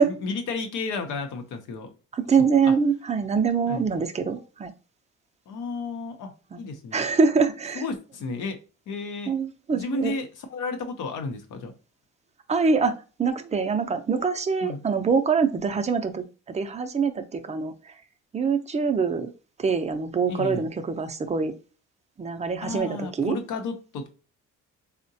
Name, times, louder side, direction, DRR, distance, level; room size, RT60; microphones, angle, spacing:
voice 1, 0.0-1.9 2.4-2.7 3.7-3.9 5.5-6.3 6.6-7.0 7.7-8.6 8.9-9.3 9.7-11.7 14.6-14.8 20.3-20.7 22.6-24.1, left 4 dB, 85° left, 6 dB, 0.7 m, -32 dB
voice 2, 2.1-4.7 6.5-6.6 6.9-7.8 9.3-10.1 12.5-17.7 18.3-19.3 19.6-21.5 22.2-23.4, right 5 dB, 25° right, 6 dB, 0.4 m, -24 dB
3.6 x 2.1 x 2.6 m, 0.35 s
cardioid pair, 90°, 30 cm